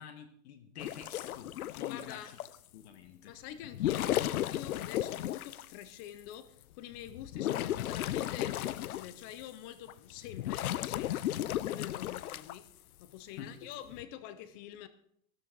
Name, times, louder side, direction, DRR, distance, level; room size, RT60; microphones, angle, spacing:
voice 1, 0.0-2.4 2.7-3.4 13.4-13.7, left 8 dB, 50° left, 1.4 m, -48 dB
sound 1, 0.8-2.6 3.6-5.7 6.3-6.4 6.9-9.4 9.9-12.6 13.7-14.0, left 13 dB, 85° left, 0.7 m, -34 dB
voice 2, 1.9-2.3 3.3-11.3 11.6-12.6 13.0-14.9, left 11 dB, 20° left, 0.3 m, -46 dB
13.0 x 12.0 x 3.9 m
hypercardioid pair, 140°, 42 cm